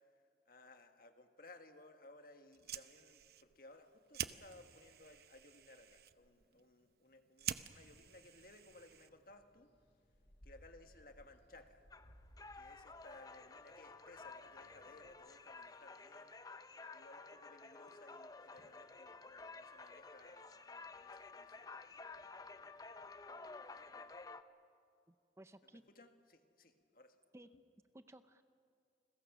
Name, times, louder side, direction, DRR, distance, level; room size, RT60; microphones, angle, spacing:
voice 1, 0.5-9.7 10.4-11.8 12.5-16.3 16.9-21.6 25.9-27.1, left 2 dB, 55° left, 6 dB, 1.7 m, -61 dB
Fire, 2.4-9.4, right 10 dB, 60° right, 0.7 m, -48 dB
sound 1, 7.9-15.1, equal, 80° left, 7.6 m, -66 dB
sound 2, 11.9-24.4, left 3 dB, 20° left, 0.7 m, -53 dB
voice 2, 25.1-25.8 27.3-27.5 27.9-28.4, right 1 dB, 15° right, 10 dB, 0.6 m, -58 dB
30.0 x 21.5 x 6.2 m, 2.4 s
head